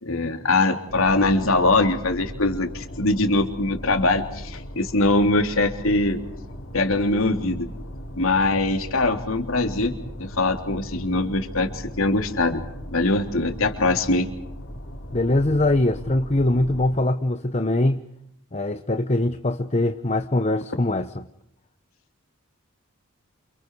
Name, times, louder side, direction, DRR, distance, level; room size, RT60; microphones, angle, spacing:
voice 1, 0.0-6.2 6.7-7.7 8.1-12.6 12.9-14.3, left 2 dB, 75° left, 3.4 m, -22 dB
sound 1, 0.9-16.9, equal, 60° left, 4.5 m, -38 dB
voice 2, 15.1-18.0 18.5-21.3, left 1 dB, 30° left, 1.0 m, -22 dB
29.5 x 28.0 x 4.8 m
head